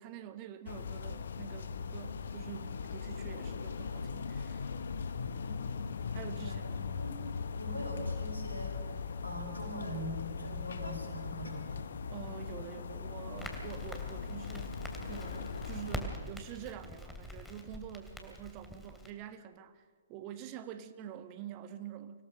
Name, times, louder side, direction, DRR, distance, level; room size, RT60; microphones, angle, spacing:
voice 1, 0.0-4.6 6.1-6.9 12.1-22.2, right 10 dB, 35° right, 10 dB, 1.4 m, -47 dB
sound 1, 0.7-16.0, left 5 dB, 65° left, 1.1 m, -39 dB
voice 2, 5.2-6.0 6.4-6.7 7.0-7.2 7.6-11.8, equal, 85° left, 1 dB, 6.0 m, -43 dB
Crackle, 13.4-19.1, left 1 dB, 5° left, 2.7 m, -44 dB
25.5 x 17.0 x 6.4 m, 1.5 s
figure-of-eight pair, 125°, 0 cm